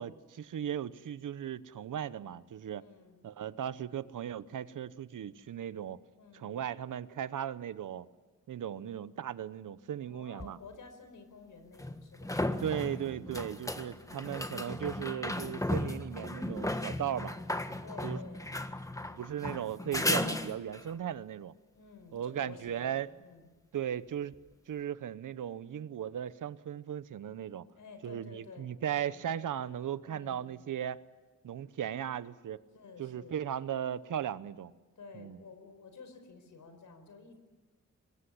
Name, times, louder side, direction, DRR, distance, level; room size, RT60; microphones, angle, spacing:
voice 1, 0.0-2.8 3.2-6.0 6.3-8.1 8.5-10.6 12.6-17.4 18.0-18.2 19.2-21.5 22.1-23.1 23.7-24.3 24.7-27.7 28.0-31.0 31.4-32.6 33.0-34.7 35.1-35.4, right 9 dB, 90° right, 15 dB, 0.9 m, -37 dB
voice 2, 2.7-3.2 6.2-6.5 10.0-12.8 13.9-14.3 16.9-17.3 17.8-18.5 19.0-19.3 21.7-23.5 27.7-28.7 29.0-29.2 30.0-30.5 32.7-33.4 35.0-37.5, left 4 dB, 85° left, 8 dB, 4.8 m, -52 dB
sound 1, 10.4-10.5 11.8-20.9 24.3-24.4, left 1 dB, 10° left, 1.6 m, -35 dB
25.5 x 21.5 x 10.0 m, 1.2 s
wide cardioid pair, 90°, 30 cm